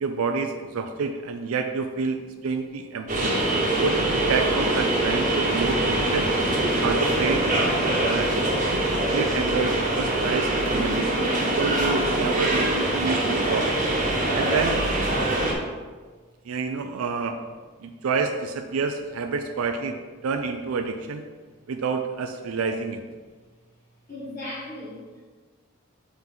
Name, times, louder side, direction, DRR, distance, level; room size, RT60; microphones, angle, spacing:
voice 1, 0.0-3.4 3.8-6.3 6.8-7.4 8.0-8.3 8.6-8.8 9.1-11.3 11.6-13.7 14.3-14.8 16.5-17.4 17.8-20.0 20.2-21.2 21.7-23.0, right 4 dB, 85° right, 5 dB, 0.4 m, -28 dB
sound 1, 3.1-15.5, right 1 dB, 40° right, 1.1 m, -23 dB
voice 2, 24.1-25.2, left 1 dB, 40° left, -9 dB, 1.2 m, -37 dB
5.6 x 4.5 x 3.8 m, 1.4 s
head